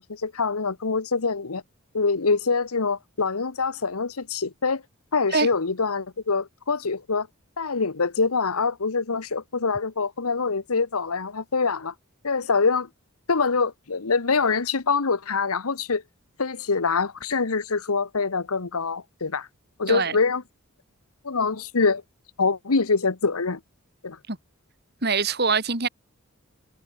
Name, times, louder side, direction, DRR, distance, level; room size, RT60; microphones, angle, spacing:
voice 1, 0.0-1.6 1.9-4.8 5.1-7.3 7.6-11.9 12.2-12.9 13.3-16.0 16.4-19.5 19.8-20.4 21.2-22.0 22.4-23.6 24.0-24.2, left 4 dB, 85° left, 1.1 m, -25 dB
voice 2, 19.9-20.2 24.3-24.4 25.0-25.9, right 4 dB, 45° right, 2.5 m, -23 dB
head